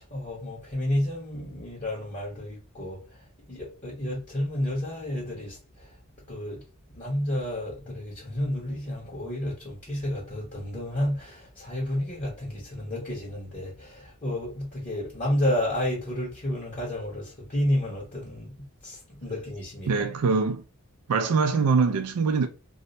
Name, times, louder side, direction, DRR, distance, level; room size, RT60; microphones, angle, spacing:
voice 1, 0.0-5.9 6.3-6.6 6.9-20.0, left 1 dB, 35° left, 1.0 m, -31 dB
voice 2, 19.9-20.6 21.1-22.5, right 4 dB, 90° right, 0.4 m, -23 dB
2.7 x 2.1 x 3.9 m
head